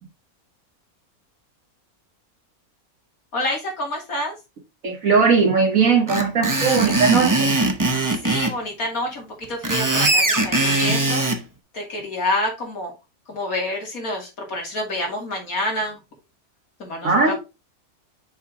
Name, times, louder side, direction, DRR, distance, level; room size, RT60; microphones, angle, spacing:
voice 1, 3.3-4.4 8.2-11.2 11.7-12.9 13.3-16.0 16.8-17.4, left 1 dB, 70° left, 3.0 m, -28 dB
voice 2, 4.8-7.6 10.9-11.0 17.0-17.4, right 5 dB, 65° right, 2.0 m, -18 dB
Screech, 6.1-8.5 9.4-11.4, right 2 dB, 15° right, 0.7 m, -20 dB
6.4 x 4.5 x 3.6 m
omnidirectional pair, 1.5 m